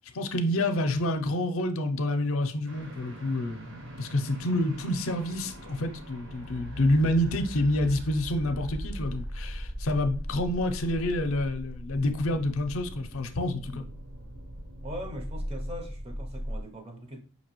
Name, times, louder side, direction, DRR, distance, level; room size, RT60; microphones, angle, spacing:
voice 1, 0.1-13.8, left 1 dB, 70° left, 0.5 m, -28 dB
sound 1, 2.7-16.6, equal, 55° right, 0.9 m, -39 dB
voice 2, 14.8-17.2, equal, 25° right, 0.5 m, -40 dB
5.2 x 2.8 x 2.9 m
head